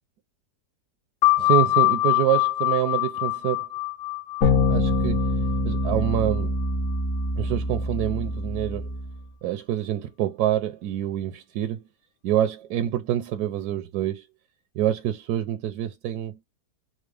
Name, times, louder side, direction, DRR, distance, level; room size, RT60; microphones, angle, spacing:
sound 1, 1.2-6.4, left 20 dB, 85° left, 1.4 m, -24 dB
voice 1, 1.4-3.7 4.7-5.3 5.6-6.6 7.4-8.9 9.4-11.8 12.2-14.3 14.7-16.4, right 12 dB, 75° right, 1.0 m, -26 dB
sound 2, 4.4-9.2, left 2 dB, 55° left, 1.4 m, -25 dB
4.3 x 2.0 x 3.2 m
omnidirectional pair, 1.8 m